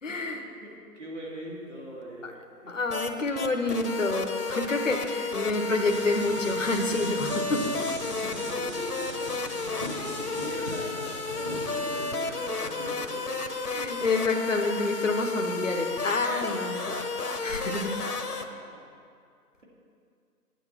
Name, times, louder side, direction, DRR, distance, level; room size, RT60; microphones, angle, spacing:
voice 1, 0.0-0.5 2.2-2.3 2.7-7.7 13.6-16.9 17.2-17.9, left 2 dB, 50° left, 3 dB, 1.0 m, -28 dB
voice 2, 0.6-2.7 8.0-9.6 10.0-13.4 18.1-18.8, right 1 dB, 45° right, -5 dB, 2.9 m, -42 dB
sound 1, 2.9-3.1 3.4-18.4, left 3 dB, 70° left, 1.1 m, -32 dB
sound 2, 5.8-12.2, equal, 20° right, 1.4 m, -39 dB
9.7 x 9.1 x 6.0 m, 2.3 s
figure-of-eight pair, 175°, 48 cm